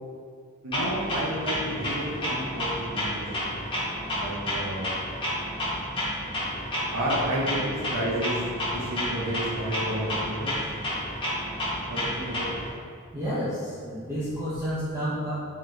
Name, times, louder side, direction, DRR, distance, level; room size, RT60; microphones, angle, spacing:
voice 1, 0.6-3.6 4.1-4.9 6.9-8.4 8.7-10.6 11.8-12.5, right 1 dB, 85° right, -5 dB, 0.7 m, -31 dB
Clock, 0.7-12.7, equal, 25° left, 0.9 m, -31 dB
voice 2, 13.1-15.4, equal, 10° right, -11 dB, 0.5 m, -30 dB
3.8 x 3.1 x 3.2 m, 2.2 s
head